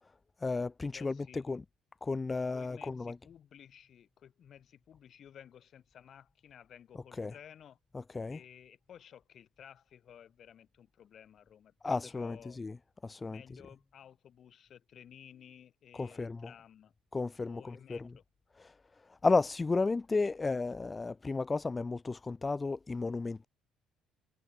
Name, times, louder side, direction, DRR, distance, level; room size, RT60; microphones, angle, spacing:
voice 1, 0.4-1.6 2.0-3.2 7.1-7.3 7.9-8.4 11.8-12.7 13.0-13.4 16.0-16.5 17.1-18.1 18.6-18.7 19.2-23.5, left 3 dB, 15° left, 1.8 m, -33 dB
voice 2, 0.9-1.5 2.5-7.8 8.3-12.6 13.3-16.9 17.5-18.2, left 9 dB, 40° left, 6.2 m, -55 dB
cardioid pair, 155°, 0 cm